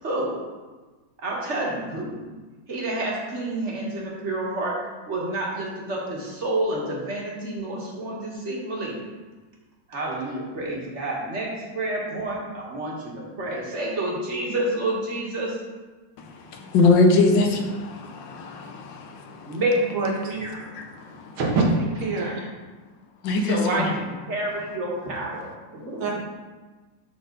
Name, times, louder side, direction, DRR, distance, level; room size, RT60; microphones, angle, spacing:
voice 1, 0.0-0.3 1.2-2.2 2.7-4.8 5.1-9.0 9.9-15.6 19.5-20.1 20.4-20.7 23.4-26.1, right 1 dB, 40° right, -3 dB, 1.7 m, -29 dB
voice 2, 16.5-19.6 20.7-21.4 23.2-23.9, left 3 dB, 75° left, 3 dB, 1.5 m, -22 dB
voice 3, 19.9-20.5 21.4-22.5 26.0-26.2, right 3 dB, 85° right, -2 dB, 2.2 m, -25 dB
12.0 x 4.1 x 3.9 m, 1.3 s
omnidirectional pair, 2.1 m